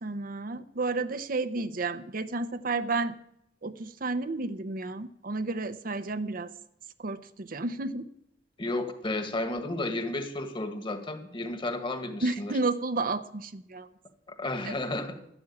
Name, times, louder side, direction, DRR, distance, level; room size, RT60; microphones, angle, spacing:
voice 1, 0.0-3.2 3.6-6.5 7.0-8.1 12.2-13.9 14.6-14.7, right 3 dB, 50° right, 11 dB, 0.7 m, -31 dB
voice 2, 8.6-12.5 14.3-15.2, left 2 dB, 30° left, 8 dB, 1.7 m, -32 dB
12.5 x 11.5 x 8.6 m, 0.76 s
head